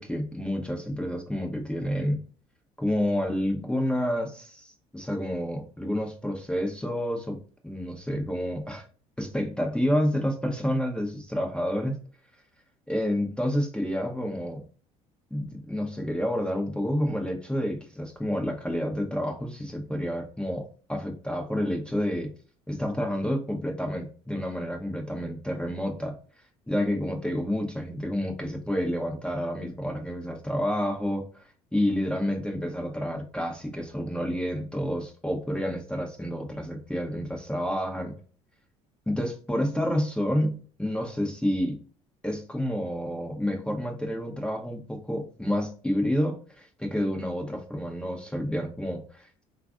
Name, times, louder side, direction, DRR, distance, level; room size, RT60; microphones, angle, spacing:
voice 1, 0.0-2.2 2.8-7.4 7.6-8.8 9.2-12.0 12.9-14.6 15.3-22.3 22.7-26.2 26.7-38.1 39.1-41.8 42.2-49.4, equal, 5° left, 2 dB, 0.7 m, -29 dB
3.3 x 2.4 x 2.3 m, 0.41 s
hypercardioid pair, 65°, 17 cm